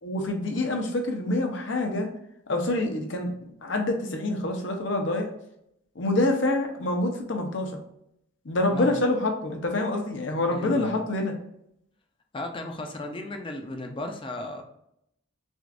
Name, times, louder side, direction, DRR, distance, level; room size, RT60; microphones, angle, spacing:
voice 1, 0.0-2.1 2.5-3.3 3.6-5.3 5.9-7.8 8.4-11.3, left 2 dB, 70° left, 3 dB, 0.8 m, -26 dB
voice 2, 10.5-11.0 12.3-14.6, left 2 dB, 25° left, 4 dB, 0.5 m, -35 dB
6.2 x 2.5 x 2.5 m, 0.75 s
head